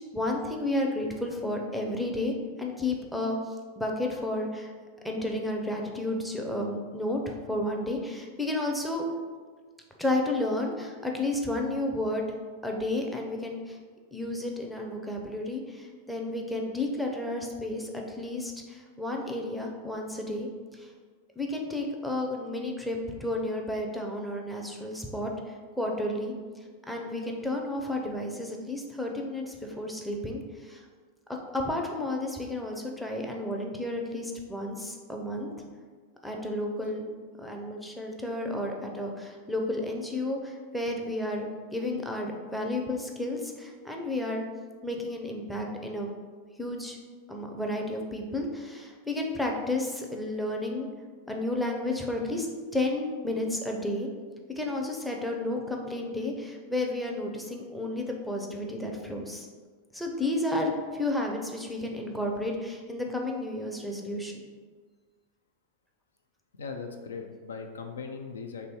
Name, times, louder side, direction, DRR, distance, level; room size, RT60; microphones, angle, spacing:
voice 1, 0.1-3.4 3.7-4.7 5.0-9.1 10.0-12.3 12.6-13.8 14.1-20.5 20.8-20.9 21.4-25.3 25.8-26.3 26.9-30.8 31.5-35.5 36.2-37.0 37.4-44.4 44.8-46.1 46.6-47.0 47.3-50.9 51.3-52.5 52.7-54.1 54.6-59.5 59.9-64.4, left 1 dB, ahead, 0 dB, 0.5 m, -32 dB
voice 2, 66.6-68.7, left 5 dB, 70° left, 4 dB, 0.3 m, -39 dB
3.2 x 2.7 x 4.4 m, 1.5 s
figure-of-eight pair, 90°, 0 cm